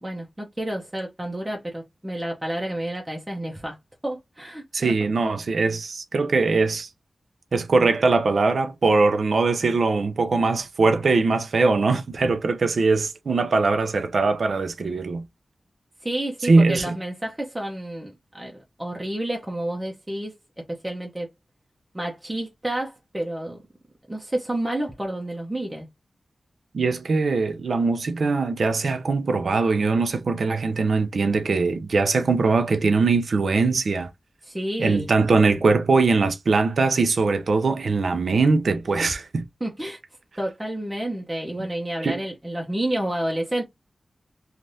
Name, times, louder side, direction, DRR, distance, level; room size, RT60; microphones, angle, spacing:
voice 1, 0.0-3.8 4.0-4.9 16.0-18.5 18.8-20.3 20.7-21.3 21.9-23.6 24.1-25.9 34.4-35.1 39.6-40.0 40.4-43.6, right 1 dB, 15° right, 0.8 m, -30 dB
voice 2, 4.7-6.9 7.5-15.2 16.4-17.0 26.7-34.1 34.8-39.4 42.0-42.2, right 3 dB, 80° right, 0.5 m, -21 dB
3.3 x 2.4 x 2.6 m
wide cardioid pair, 70°, 0 cm